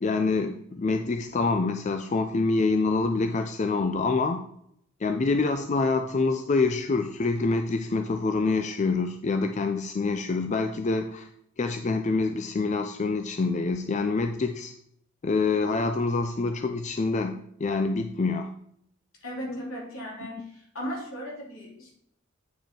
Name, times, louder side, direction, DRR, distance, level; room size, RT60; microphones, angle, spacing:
voice 1, 0.0-4.4 5.0-11.3 11.6-14.7 15.2-18.5 19.5-19.7, left 3 dB, 35° left, 7 dB, 0.4 m, -26 dB
voice 2, 19.2-21.9, equal, 70° left, -3 dB, 3.1 m, -37 dB
8.9 x 5.2 x 4.5 m, 0.71 s
head